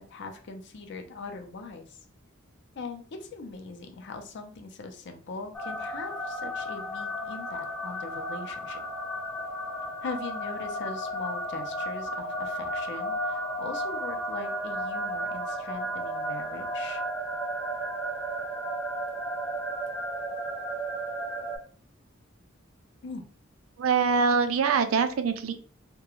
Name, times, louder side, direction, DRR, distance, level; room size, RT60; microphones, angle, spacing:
voice 1, 0.1-2.0 2.8-8.8 10.0-17.0 23.0-23.3, left 3 dB, 60° left, 5 dB, 0.5 m, -40 dB
sound 1, 5.5-21.6, equal, 10° left, 0.5 m, -33 dB
voice 2, 23.8-25.5, right 5 dB, 85° right, 9 dB, 0.4 m, -24 dB
2.3 x 2.2 x 2.9 m, 0.43 s
head